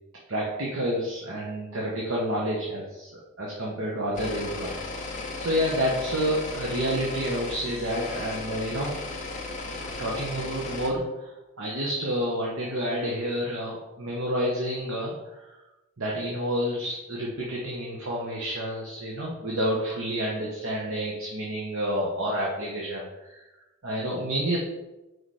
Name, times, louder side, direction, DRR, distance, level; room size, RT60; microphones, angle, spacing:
voice 1, 0.3-3.1 3.4-4.7 5.4-8.9 9.7-11.3 11.6-15.6 16.0-23.4 23.8-24.6, equal, 75° right, -3 dB, 1.1 m, -29 dB
sound 1, 4.1-10.9, left 3 dB, 35° left, 0.9 m, -35 dB
4.7 x 4.3 x 4.8 m, 1.0 s
head